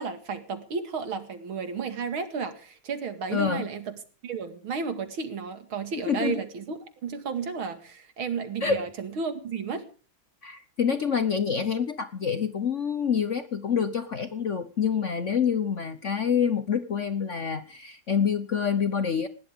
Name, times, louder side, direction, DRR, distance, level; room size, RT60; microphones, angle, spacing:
voice 1, 0.0-3.9 4.2-9.8, right 5 dB, 75° right, 9 dB, 2.9 m, -33 dB
voice 2, 3.3-3.7 6.1-6.4 8.6-8.8 10.4-19.3, left 7 dB, 50° left, 11 dB, 0.9 m, -27 dB
20.0 x 17.0 x 3.7 m, 0.38 s
omnidirectional pair, 2.3 m